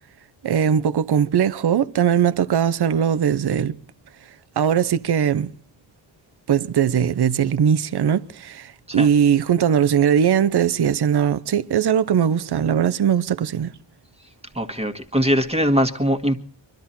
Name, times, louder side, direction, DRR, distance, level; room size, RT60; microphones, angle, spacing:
voice 1, 0.4-3.8 4.6-5.5 6.5-13.7, right 8 dB, 55° right, 0.8 m, -20 dB
voice 2, 14.5-16.4, equal, 15° right, 1.7 m, -21 dB
24.0 x 13.0 x 4.3 m
wide cardioid pair, 100°, 48 cm